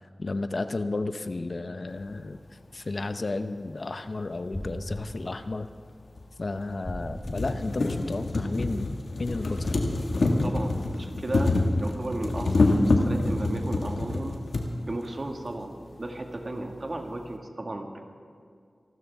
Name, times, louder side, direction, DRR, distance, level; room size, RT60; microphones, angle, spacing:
voice 1, 0.2-2.4 2.7-5.7 6.4-8.9 9.2-9.8, left 3 dB, 60° left, 10 dB, 0.7 m, -32 dB
sound 1, 4.5-5.1 6.8-7.4 9.2-9.7, left 1 dB, 20° left, 3.7 m, -37 dB
sound 2, 5.1-5.2 6.2-6.3 6.7-6.8 7.1-14.7 15.6-15.7 15.9-16.0, left 2 dB, 90° left, 1.7 m, -26 dB
voice 2, 10.4-14.4 14.8-18.0, right 1 dB, 50° right, 3 dB, 1.8 m, -35 dB
27.0 x 12.5 x 3.5 m, 2.3 s
wide cardioid pair, 50°, 0 cm